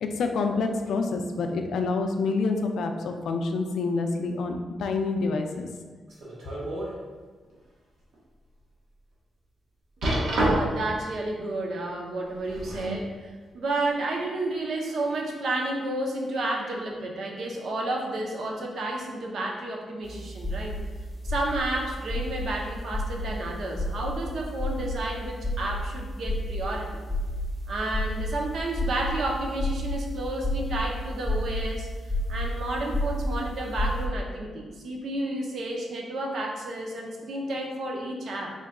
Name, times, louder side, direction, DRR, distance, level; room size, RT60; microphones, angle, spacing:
voice 1, 0.0-5.7, left 3 dB, 75° left, 5 dB, 0.3 m, -27 dB
sound 1, 6.1-6.9 7.4-7.6 8.1-8.2 10.0-10.9 12.3-13.0 13.9-14.0, right 1 dB, 75° right, 1.0 m, -27 dB
voice 2, 10.2-20.7 21.2-27.0 27.7-31.9 32.3-38.5, right 2 dB, 55° right, 0 dB, 0.6 m, -31 dB
sound 2, 20.0-34.1, left 1 dB, 5° right, 0.6 m, -31 dB
3.8 x 2.2 x 3.6 m, 1.4 s
wide cardioid pair, 170°, 0 cm